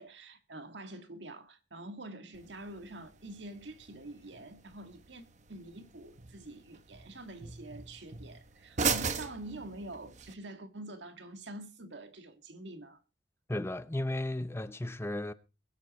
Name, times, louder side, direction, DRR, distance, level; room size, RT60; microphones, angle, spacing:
voice 1, 0.0-13.0, right 2 dB, 80° right, 1.8 m, -46 dB
sound 1, 2.3-10.3, right 5 dB, 40° right, 1.0 m, -39 dB
voice 2, 13.5-15.3, left 1 dB, 15° left, 0.7 m, -34 dB
22.0 x 8.4 x 4.1 m
head